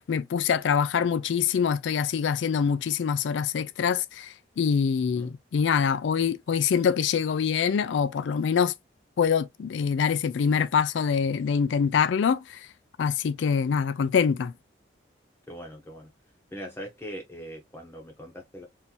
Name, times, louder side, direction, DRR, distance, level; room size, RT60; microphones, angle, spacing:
voice 1, 0.0-8.7 9.2-12.7 13.0-14.5, left 6 dB, 85° left, 0.4 m, -25 dB
voice 2, 15.5-16.1 16.5-18.7, equal, 15° left, 0.7 m, -41 dB
3.7 x 2.6 x 2.8 m
head